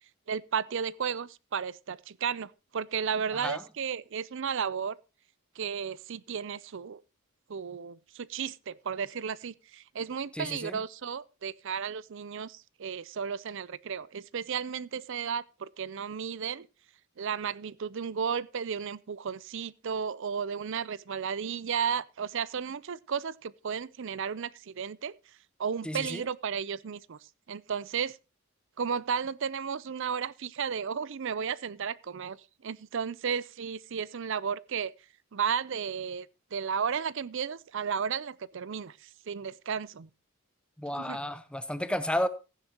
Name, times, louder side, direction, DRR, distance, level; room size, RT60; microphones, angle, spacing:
voice 1, 0.3-5.0 5.6-7.0 7.5-16.7 17.2-25.2 25.6-27.2 27.5-28.1 28.8-32.4 32.6-34.9 35.3-39.0 39.3-40.1 40.9-41.2, right 7 dB, 60° right, 0.5 m, -33 dB
voice 2, 10.3-10.8 25.8-26.2 40.8-42.3, left 1 dB, 5° left, 0.8 m, -32 dB
15.0 x 10.0 x 2.9 m
head